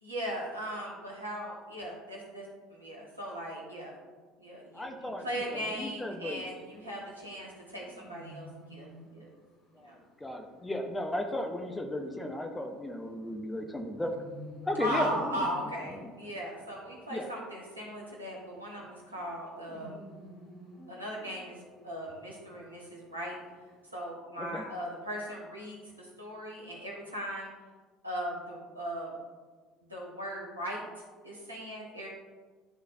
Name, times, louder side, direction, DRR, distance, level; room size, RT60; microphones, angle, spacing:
voice 1, 0.0-4.0 4.4-8.9 9.1-9.3 9.8-9.9 14.8-20.0 20.9-23.3 23.9-27.5 28.0-29.2 29.9-32.1, equal, 85° right, -4 dB, 1.4 m, -38 dB
voice 2, 4.7-5.2 5.5-6.4 9.7-14.1 14.6-15.5 15.9-16.1 17.1-17.3 24.4-24.6, left 1 dB, 10° left, 4 dB, 0.8 m, -35 dB
sound 1, 6.5-24.0, equal, 55° left, 1.7 m, -53 dB
11.0 x 4.0 x 2.6 m, 1.4 s
figure-of-eight pair, 60°, 0 cm